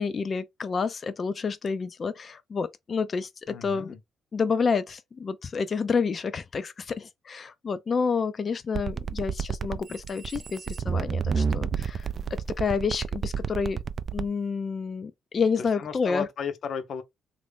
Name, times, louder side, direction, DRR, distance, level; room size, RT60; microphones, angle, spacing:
voice 1, 0.0-3.9 4.3-13.8 14.1-16.3, left 5 dB, 40° left, 0.4 m, -29 dB
voice 2, 3.5-4.0 15.6-17.0, left 6 dB, 60° left, 0.8 m, -34 dB
sound 1, 8.7-14.3, right 6 dB, 50° right, 0.3 m, -30 dB
3.1 x 2.5 x 3.4 m
cardioid pair, 90°, 0 cm